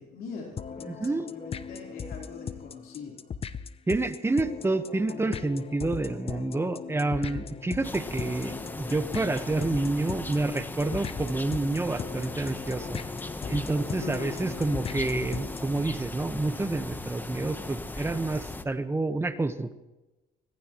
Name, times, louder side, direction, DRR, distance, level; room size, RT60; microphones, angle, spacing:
voice 1, 0.0-3.2 14.0-14.4, left 4 dB, 65° left, -1 dB, 4.2 m, -41 dB
sound 1, 0.6-15.8, left 6 dB, 35° left, 0.8 m, -38 dB
voice 2, 0.8-1.3 3.9-13.0 13.5-19.7, right 2 dB, 15° right, 9 dB, 1.3 m, -29 dB
sound 2, 7.8-18.6, left 2 dB, 10° left, 1.0 m, -38 dB
24.5 x 19.0 x 3.1 m, 1.0 s
cardioid pair, 110°, 17 cm